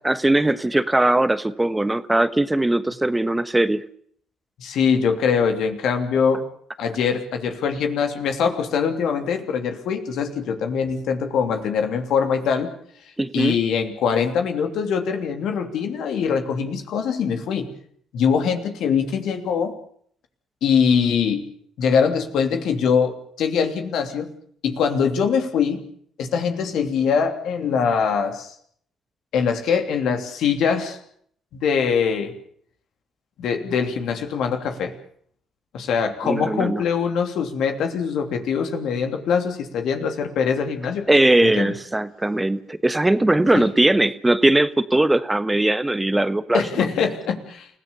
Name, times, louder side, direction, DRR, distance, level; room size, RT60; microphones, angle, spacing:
voice 1, 0.0-3.8 13.2-13.6 36.2-36.8 41.1-46.9, right 1 dB, 15° right, 13 dB, 1.3 m, -20 dB
voice 2, 4.6-6.4 6.8-12.7 13.3-17.7 18.1-19.7 20.6-21.4 21.8-24.3 24.6-25.8 26.2-28.5 29.3-31.0 31.5-32.3 33.4-34.9 35.7-41.1 41.4-41.7 43.5-43.7 46.5-47.7, left 6 dB, 70° left, 5 dB, 3.1 m, -23 dB
29.0 x 16.5 x 7.0 m, 0.63 s
hypercardioid pair, 50°, 0 cm